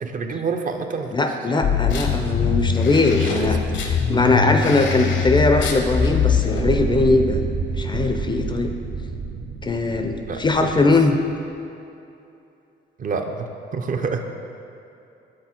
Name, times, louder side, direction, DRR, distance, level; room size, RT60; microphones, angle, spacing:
voice 1, 0.0-1.8 3.1-3.5 10.3-10.9 13.0-14.2, right 4 dB, 40° right, 5 dB, 0.5 m, -28 dB
voice 2, 1.1-7.4 7.8-8.7 9.6-11.2, left 3 dB, 25° left, 5 dB, 0.4 m, -20 dB
sound 1, 1.6-6.6, left 6 dB, 70° left, 0.7 m, -22 dB
sound 2, 6.6-11.5, right 4 dB, 75° right, 0.8 m, -28 dB
6.8 x 4.0 x 4.3 m, 2.7 s
cardioid pair, 90°, 20 cm